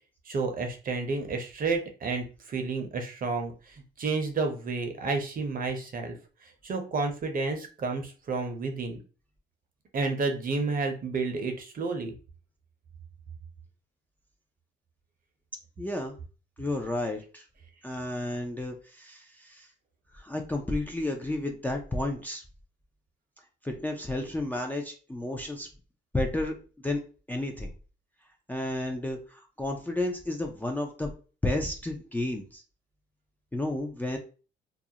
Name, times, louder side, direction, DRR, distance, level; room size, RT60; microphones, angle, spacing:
voice 1, 0.3-6.1 6.4-9.0 9.9-12.1, right 4 dB, 45° right, 5 dB, 0.6 m, -31 dB
voice 2, 15.8-16.2 16.6-17.4 17.8-19.7 20.1-22.4 23.6-25.7 26.1-26.6 26.8-27.0 27.3-27.7 28.5-31.1 31.4-32.6 33.5-34.2, left 1 dB, 10° left, 2 dB, 0.4 m, -32 dB
2.4 x 2.0 x 2.7 m, 0.36 s
cardioid pair, 90°, 20 cm